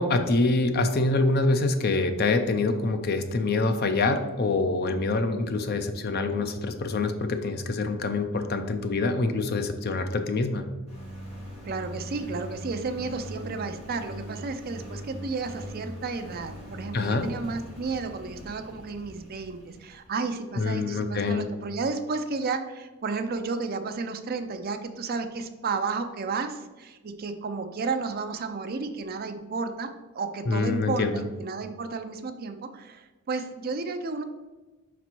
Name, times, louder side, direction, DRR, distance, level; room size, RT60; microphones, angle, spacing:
voice 1, 0.0-10.7 16.9-17.3 20.6-21.5 30.5-31.2, left 3 dB, 45° left, 7 dB, 0.5 m, -25 dB
Engine, 10.9-20.3, equal, 30° left, 1.6 m, -41 dB
voice 2, 11.6-34.2, right 4 dB, 45° right, 8 dB, 0.4 m, -32 dB
5.2 x 4.1 x 4.5 m, 1.2 s
head